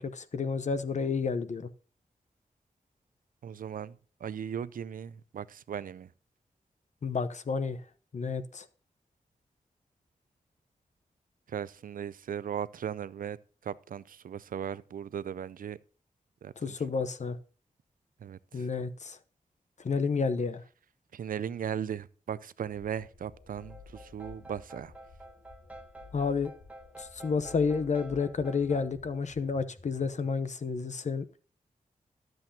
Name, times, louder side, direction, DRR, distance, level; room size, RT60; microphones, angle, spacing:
voice 1, 0.0-1.7 7.0-7.8 8.1-8.7 16.6-17.4 18.5-19.2 19.8-20.6 26.1-26.5 27.0-31.4, left 5 dB, 55° left, 0.9 m, -30 dB
voice 2, 3.4-6.1 11.5-13.4 13.6-15.8 16.4-16.8 18.2-18.7 21.1-24.9, right 8 dB, 80° right, 0.4 m, -37 dB
sound 1, 22.6-30.2, left 4 dB, 85° left, 4.6 m, -53 dB
sound 2, 23.6-28.9, right 1 dB, 10° right, 1.5 m, -50 dB
12.0 x 7.8 x 2.8 m
wide cardioid pair, 80°, 14 cm